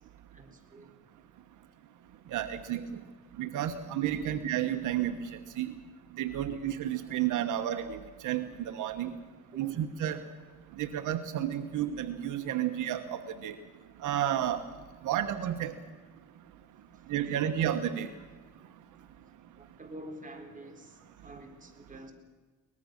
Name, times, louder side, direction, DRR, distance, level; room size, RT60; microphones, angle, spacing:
voice 1, 0.3-0.9 2.5-2.6 2.9-3.0 4.2-4.3 9.2-9.7 19.6-22.1, right 1 dB, 25° right, 3 dB, 3.9 m, -48 dB
voice 2, 2.3-2.8 3.4-5.7 6.2-9.1 9.6-10.2 10.8-13.6 14.0-14.6 15.0-15.7 17.1-18.1, right 11 dB, 80° right, 9 dB, 1.2 m, -31 dB
23.0 x 20.0 x 6.6 m, 1.3 s
cardioid pair, 90°, 30 cm